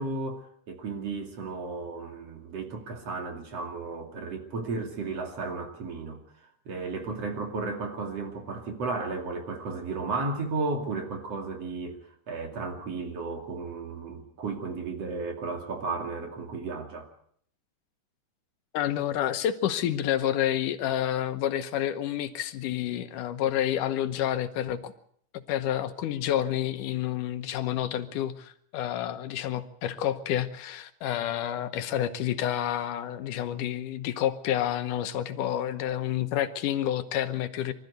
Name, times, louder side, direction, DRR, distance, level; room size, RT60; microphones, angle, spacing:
voice 1, 0.0-6.2 6.6-12.0 12.3-17.1, right 3 dB, 50° right, 4 dB, 3.4 m, -34 dB
voice 2, 18.7-24.9 25.3-37.7, left 11 dB, 85° left, 10 dB, 2.6 m, -29 dB
24.0 x 14.0 x 8.0 m, 0.64 s
omnidirectional pair, 3.7 m